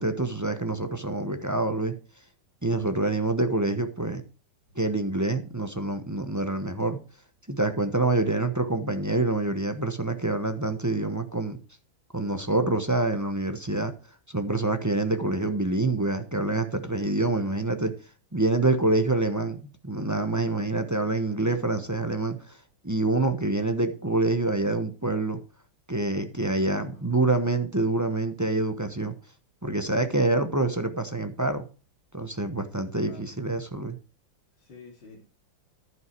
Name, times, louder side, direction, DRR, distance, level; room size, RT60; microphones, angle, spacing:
voice 1, 0.0-1.9 2.6-4.2 4.7-7.0 7.5-11.6 12.1-13.9 14.3-17.9 18.3-19.6 19.8-22.6 22.8-25.4 25.9-29.1 29.6-31.7 32.1-34.0, right 2 dB, 20° right, 7 dB, 0.5 m, -26 dB
voice 2, 8.2-8.5 17.3-17.7 21.2-21.5 26.5-27.1 33.0-33.3 34.6-35.2, left 3 dB, 65° left, -3 dB, 3.9 m, -49 dB
11.0 x 9.2 x 4.6 m, 0.34 s
omnidirectional pair, 2.2 m